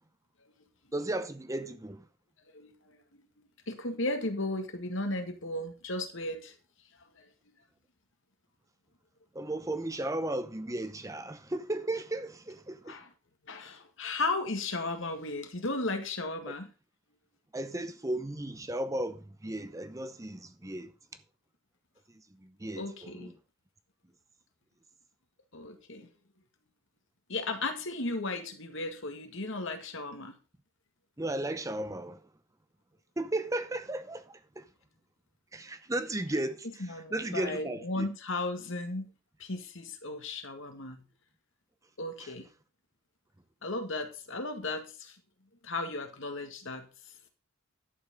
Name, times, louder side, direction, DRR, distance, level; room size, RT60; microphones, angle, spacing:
voice 1, 0.9-2.1 9.3-13.0 16.5-16.6 17.5-20.9 22.4-23.3 31.2-32.3 33.2-34.7 35.5-38.1 42.2-42.3, right 1 dB, 15° right, 0.7 m, -35 dB
voice 2, 2.5-3.2 3.7-6.5 7.2-7.3 12.9-13.1 13.5-16.7 22.8-23.3 25.5-26.1 27.3-30.4 36.8-39.1 39.4-41.0 42.0-42.5 43.6-45.2 45.6-46.9, left 2 dB, 60° left, 2.0 m, -35 dB
11.0 x 7.1 x 5.2 m
head